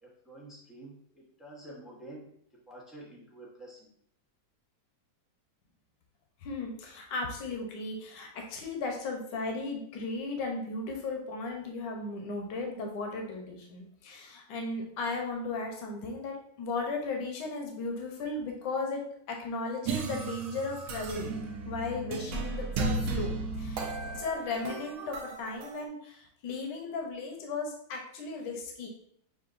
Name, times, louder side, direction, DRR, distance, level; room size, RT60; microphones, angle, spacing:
voice 1, 0.0-2.3 2.7-3.9, right 1 dB, ahead, -4 dB, 0.3 m, -48 dB
voice 2, 6.4-21.3 21.6-28.9, left 3 dB, 70° left, 1 dB, 1.4 m, -36 dB
sound 1, 19.8-25.8, right 3 dB, 75° right, 0.8 m, -35 dB
6.6 x 2.5 x 2.5 m, 0.68 s
omnidirectional pair, 2.0 m